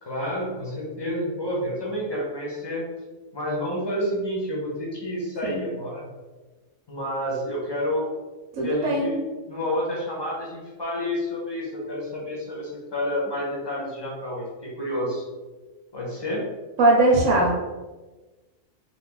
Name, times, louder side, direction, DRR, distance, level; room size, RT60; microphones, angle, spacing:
voice 1, 0.0-2.8 3.3-6.1 6.9-8.1 8.6-9.2 9.5-15.2 15.9-16.4, equal, 25° left, -4 dB, 0.7 m, -29 dB
voice 2, 8.6-9.1 16.8-17.7, right 2 dB, 70° right, -3 dB, 1.0 m, -20 dB
2.8 x 2.4 x 3.7 m, 1.2 s
omnidirectional pair, 1.4 m